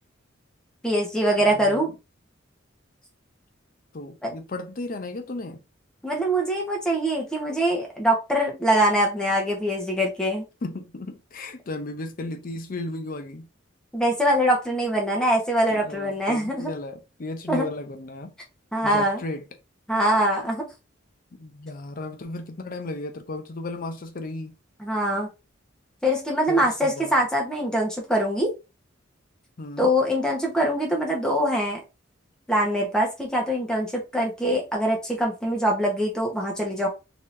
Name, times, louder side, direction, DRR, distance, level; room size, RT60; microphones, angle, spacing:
voice 1, 0.8-1.9 4.2-4.3 6.0-10.4 13.9-16.7 17.5-17.7 18.7-19.2 19.9-20.6 24.8-25.3 26.0-28.5 29.8-31.8 32.5-36.9, equal, 5° left, 1.0 m, -23 dB
voice 2, 1.4-1.9 3.9-5.6 10.6-13.5 15.7-18.3 18.8-19.4 21.4-24.5 26.5-27.2 29.6-29.9, left 2 dB, 45° left, 0.5 m, -35 dB
3.7 x 3.0 x 2.6 m
head